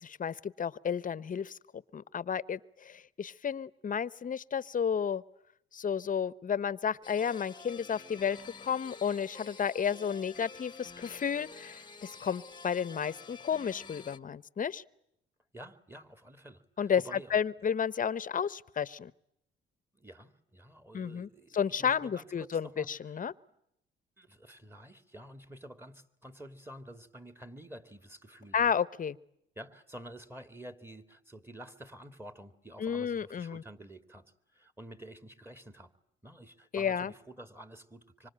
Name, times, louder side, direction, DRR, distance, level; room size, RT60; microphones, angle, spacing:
voice 1, 0.0-5.2 5.7-14.8 16.8-17.0 17.3-19.1 20.9-23.3 28.5-29.2 32.8-33.6 36.7-37.1, left 7 dB, 45° left, 19 dB, 1.0 m, -32 dB
sound 1, 7.0-14.2, left 4 dB, 20° left, 1.2 m, -49 dB
voice 2, 15.5-17.4 19.9-23.2 24.2-28.7 29.6-34.2 34.5-35.9 36.2-38.3, right 1 dB, 10° right, 11 dB, 2.5 m, -49 dB
25.5 x 25.5 x 8.8 m, 0.78 s
cardioid pair, 90°, 20 cm